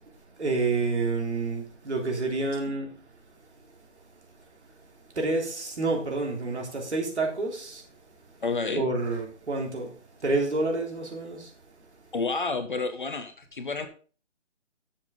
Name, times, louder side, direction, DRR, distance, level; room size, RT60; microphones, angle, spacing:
voice 1, 0.4-3.0 5.2-7.8 8.8-9.9 10.2-11.5, right 3 dB, 65° right, 3.6 m, -28 dB
voice 2, 8.4-8.8 12.1-13.9, left 4 dB, 40° left, 1.0 m, -30 dB
9.0 x 7.4 x 3.8 m
hypercardioid pair, 175°, 37 cm